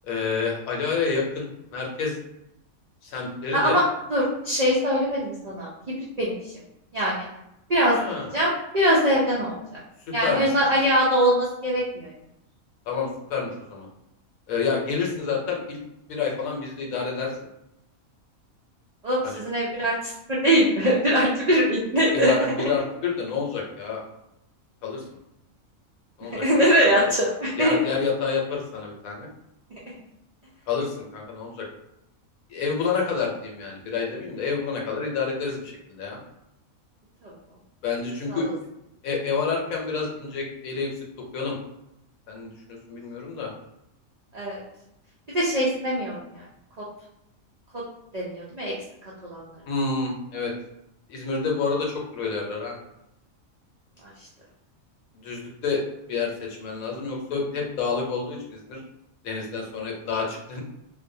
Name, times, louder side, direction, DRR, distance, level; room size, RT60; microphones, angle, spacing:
voice 1, 0.1-2.2 3.0-3.8 7.8-8.3 10.1-10.5 12.9-13.9 14.5-15.8 16.1-17.3 19.2-19.4 22.1-24.0 24.8-25.0 26.2-26.4 26.9-27.1 27.6-29.3 30.7-31.7 32.5-36.2 37.8-38.5 39.0-40.9 41.3-41.6 42.3-42.5 42.9-43.5 49.7-50.5 51.1-52.7 55.2-55.8 56.1-58.8 59.2-60.6, left 5 dB, 80° left, -1 dB, 1.1 m, -28 dB
voice 2, 3.5-3.8 4.1-6.5 6.9-7.3 7.7-8.0 8.3-9.6 10.1-12.1 19.0-22.3 26.4-27.8 37.2-37.3 38.3-38.5 44.3-44.6 45.3-46.4 46.8-46.9 47.7-47.8 48.1-48.7 49.2-49.4 54.2-54.3, equal, 80° right, -6 dB, 0.3 m, -22 dB
2.5 x 2.1 x 2.6 m, 0.84 s
omnidirectional pair, 1.4 m